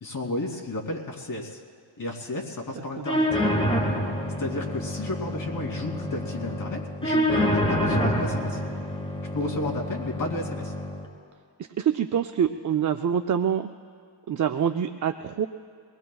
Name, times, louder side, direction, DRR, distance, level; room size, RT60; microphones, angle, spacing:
voice 1, 0.0-1.6 2.0-3.3 4.4-8.6 9.3-10.7, left 2 dB, 45° left, -1 dB, 2.8 m, -32 dB
sound 1, 3.0-11.0, equal, 10° left, 2.4 m, -27 dB
voice 2, 11.8-13.7 14.3-15.5, right 8 dB, 40° right, 6 dB, 0.5 m, -25 dB
24.0 x 19.5 x 2.3 m, 2.3 s
wide cardioid pair, 100°, 46 cm